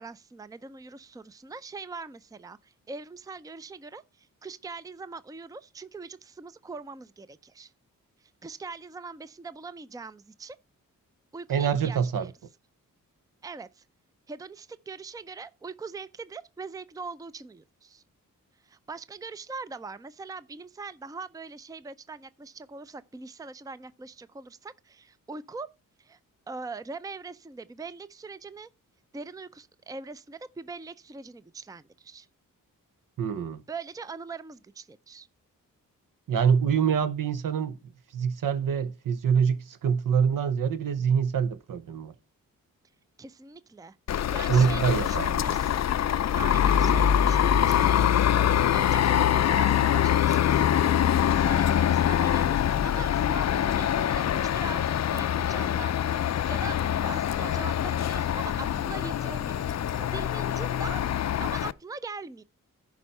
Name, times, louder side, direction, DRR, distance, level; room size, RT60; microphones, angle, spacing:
voice 1, 0.0-7.7 8.4-10.6 11.3-12.3 13.4-13.8 14.3-18.0 18.6-25.7 26.0-26.2 26.5-28.7 29.1-32.3 33.7-35.3 43.2-44.0 44.3-45.9 46.3-48.4 48.7-50.8 51.3-54.8 55.1-61.0 61.4-62.4, right 4 dB, 10° right, 0.5 m, -42 dB
voice 2, 11.5-12.3 33.2-33.6 36.3-37.8 38.1-42.1 44.5-45.6, right 7 dB, 70° right, 0.9 m, -25 dB
sound 1, 44.1-61.7, left 10 dB, 50° left, 0.5 m, -24 dB
10.5 x 4.6 x 5.4 m
cardioid pair, 60°, 34 cm